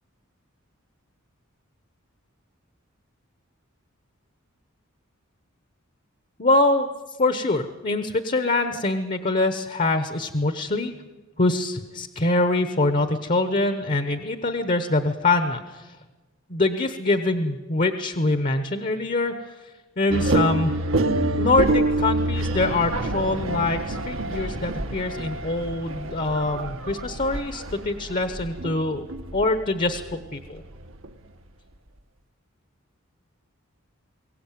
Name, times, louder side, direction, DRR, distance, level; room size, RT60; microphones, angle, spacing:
voice 1, 6.4-6.9 7.2-10.9 11.4-16.0 16.5-20.7 21.4-29.0 29.3-30.6, left 2 dB, 40° left, 10 dB, 1.1 m, -24 dB
sound 1, 20.1-31.1, right 2 dB, 75° right, 1.3 m, -27 dB
23.0 x 17.0 x 9.2 m, 1.3 s
head